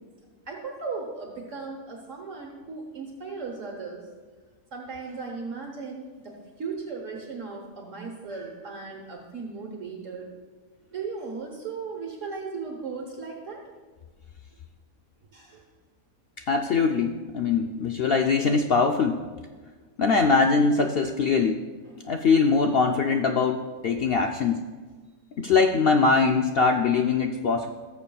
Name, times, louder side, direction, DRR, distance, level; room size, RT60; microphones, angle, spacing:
voice 1, 0.5-4.1 4.7-10.3 10.9-13.6 15.3-15.6 21.8-22.0, right 4 dB, 60° right, 0 dB, 1.5 m, -37 dB
voice 2, 16.5-19.2 20.0-21.6 22.0-24.6 25.4-27.7, left 4 dB, 70° left, 4 dB, 0.5 m, -22 dB
18.5 x 7.0 x 2.3 m, 1.4 s
omnidirectional pair, 1.5 m